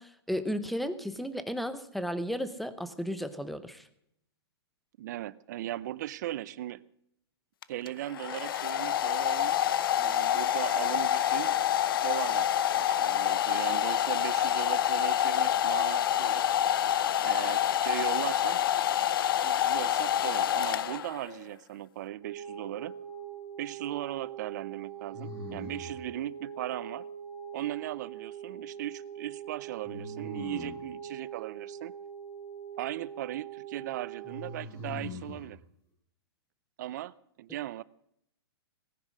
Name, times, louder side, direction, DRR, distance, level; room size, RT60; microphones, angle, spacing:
voice 1, 0.0-3.9, equal, ahead, 12 dB, 0.7 m, -34 dB
voice 2, 5.0-6.8 7.7-11.6 12.0-12.5 12.7-16.4 17.2-18.7 19.4-22.9 23.6-27.1 27.5-31.9 32.8-35.6 36.8-37.8, right 14 dB, 45° right, 20 dB, 0.6 m, -38 dB
Domestic sounds home sounds, 7.6-21.3, left 11 dB, 55° left, 0.7 m, -27 dB
sound 1, 22.2-34.5, right 9 dB, 80° right, 3.4 m, -43 dB
sound 2, 22.4-23.1 25.1-26.1 29.9-30.9 34.2-35.5, left 3 dB, 20° left, 5.1 m, -42 dB
18.5 x 10.5 x 6.3 m, 0.73 s
hypercardioid pair, 160°, 14 cm